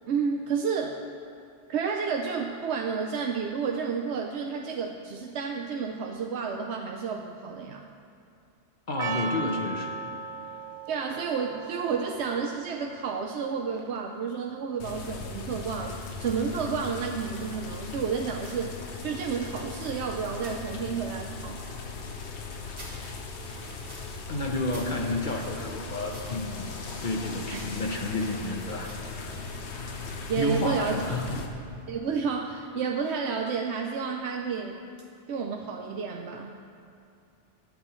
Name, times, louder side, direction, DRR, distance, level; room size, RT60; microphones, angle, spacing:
voice 1, 0.1-1.0 1.7-7.9 10.9-18.8 19.0-21.6 27.5-27.6 30.3-30.9 31.9-34.8 35.3-36.6, right 6 dB, 80° right, 3 dB, 0.9 m, -31 dB
voice 2, 8.9-9.9 24.3-26.7 27.0-29.4 30.4-31.4, left 2 dB, 50° left, 2 dB, 1.0 m, -30 dB
Percussion, 9.0-14.2, right 4 dB, 55° right, 0.5 m, -38 dB
sound 1, 14.8-31.5, left 4 dB, 85° left, 1.3 m, -38 dB
sound 2, 16.3-31.9, equal, 40° right, 3.1 m, -51 dB
23.0 x 8.2 x 3.1 m, 2.5 s
omnidirectional pair, 1.1 m